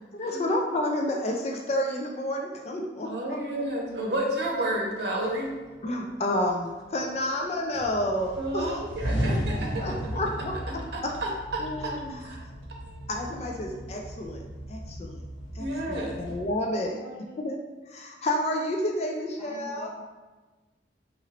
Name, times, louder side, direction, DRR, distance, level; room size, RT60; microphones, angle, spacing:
voice 1, 0.1-3.1 5.8-8.7 9.8-11.1 11.6-12.2 13.1-14.4 14.7-15.2 15.5-16.9 17.3-17.6 17.9-19.9, left 1 dB, 35° left, 1 dB, 0.3 m, -30 dB
voice 2, 3.0-5.5 8.4-10.0 10.9-11.9 12.2-12.4 12.7-13.1 15.6-16.2, right 1 dB, 65° right, -1 dB, 0.7 m, -31 dB
sound 1, 4.5-4.6 5.1-5.9 6.2-7.4 7.7-16.4, equal, 75° left, 1.3 m, -35 dB
voice 3, 16.7-17.5 19.4-19.9, equal, ahead, -9 dB, 1.4 m, -45 dB
3.9 x 2.9 x 2.8 m, 1.2 s
head